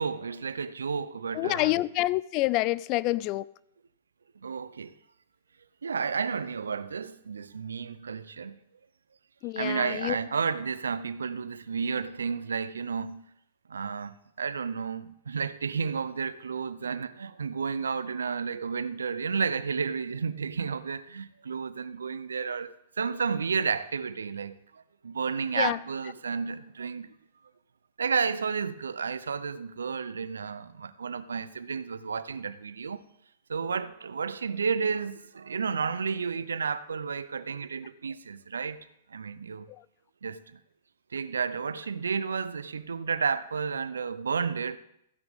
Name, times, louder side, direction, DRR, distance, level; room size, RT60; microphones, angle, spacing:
voice 1, 0.0-1.8 4.4-4.9 5.8-8.6 9.6-13.2 13.7-27.1 28.0-33.0 33.5-38.8 39.1-39.7 40.2-40.6 41.1-44.8, right 5 dB, 85° right, 0.6 m, -32 dB
voice 2, 1.3-3.4 9.4-10.2 25.6-25.8, left 18 dB, 40° left, 0.4 m, -27 dB
15.0 x 9.9 x 3.6 m
hypercardioid pair, 115°, 0 cm